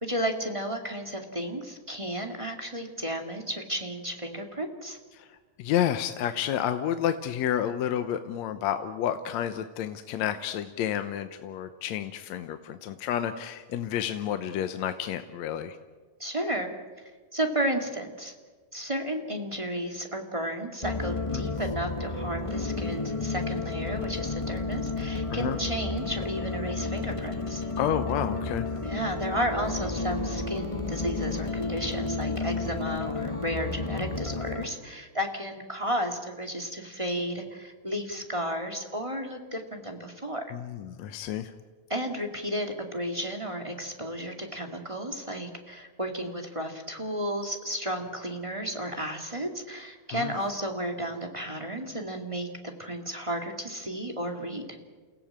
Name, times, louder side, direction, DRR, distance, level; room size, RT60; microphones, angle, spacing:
voice 1, 0.0-5.0 16.2-16.7 17.3-18.3 18.7-27.6 28.8-40.4 41.9-54.6, equal, 10° right, 3 dB, 1.8 m, -33 dB
voice 2, 5.6-15.8 21.3-21.5 25.3-25.6 27.8-28.7 40.5-41.5 50.1-50.3, left 10 dB, 70° left, 9 dB, 2.0 m, -30 dB
sound 1, 20.8-34.7, left 3 dB, 30° left, 0.6 m, -32 dB
29.5 x 16.5 x 8.7 m, 1.4 s
omnidirectional pair, 3.5 m